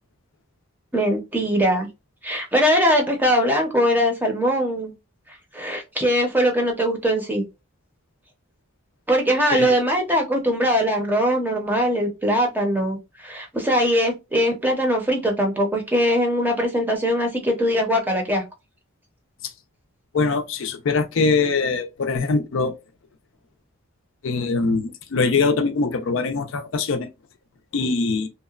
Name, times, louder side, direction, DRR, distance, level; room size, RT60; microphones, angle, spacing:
voice 1, 0.9-1.9 2.2-4.9 5.3-7.4 9.1-18.4, equal, 10° right, 0.6 m, -21 dB
voice 2, 20.1-22.7 24.2-27.1 27.7-28.3, left 4 dB, 65° left, 0.4 m, -22 dB
2.8 x 2.1 x 2.3 m
head